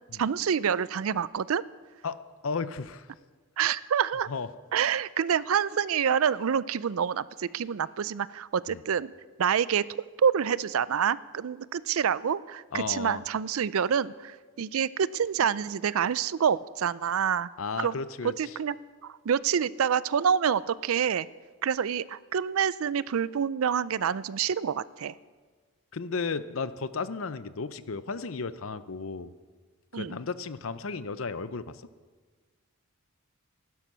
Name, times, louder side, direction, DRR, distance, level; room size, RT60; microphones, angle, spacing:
voice 1, 0.2-1.6 3.6-4.3 4.7-9.1 9.4-17.5 17.8-17.9 18.2-18.8 19.0-21.3 21.6-25.1 29.9-30.2, right 7 dB, 75° right, 19 dB, 0.4 m, -27 dB
voice 2, 2.4-3.1 4.3-4.5 8.7-8.8 12.7-13.2 17.6-18.3 25.9-29.3 29.9-31.8, left 4 dB, 70° left, 14 dB, 0.6 m, -34 dB
15.5 x 12.0 x 6.2 m, 1.5 s
head